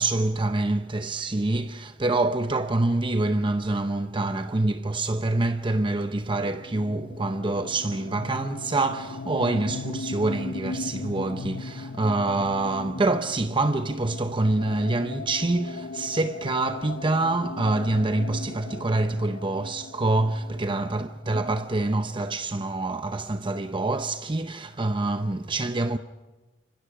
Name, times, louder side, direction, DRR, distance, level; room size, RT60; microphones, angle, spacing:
voice 1, 0.0-26.0, right 2 dB, 25° right, 0.7 m, -26 dB
sound 1, 6.4-22.0, left 3 dB, 85° left, 0.8 m, -38 dB
29.5 x 25.0 x 4.9 m
head